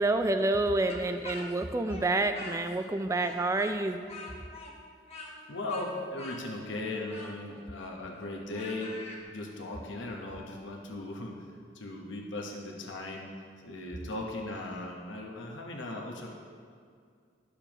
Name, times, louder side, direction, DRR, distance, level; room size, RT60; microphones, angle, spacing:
voice 1, 0.0-4.0, right 2 dB, 15° right, 8 dB, 0.3 m, -28 dB
Speech, 0.9-2.9 3.2-9.2, left 2 dB, 35° left, 1.0 m, -45 dB
voice 2, 5.2-9.0 9.3-11.5 11.7-13.3 13.6-16.3, left 2 dB, 90° left, 0 dB, 1.0 m, -38 dB
12.5 x 6.9 x 3.0 m, 2.1 s
head